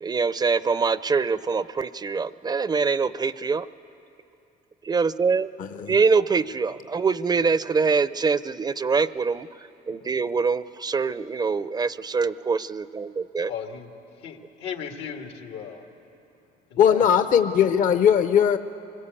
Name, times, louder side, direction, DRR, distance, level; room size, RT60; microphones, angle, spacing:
voice 1, 0.0-3.7 4.8-5.6 5.9-13.5, right 5 dB, 25° right, 16 dB, 0.5 m, -24 dB
voice 2, 5.6-6.0 16.8-18.6, left 8 dB, 50° left, 10 dB, 0.7 m, -19 dB
voice 3, 13.5-13.9 14.2-15.8 16.7-17.1, left 7 dB, 90° left, 4 dB, 2.1 m, -35 dB
25.0 x 21.5 x 8.4 m, 2.9 s
cardioid pair, 110°, 17 cm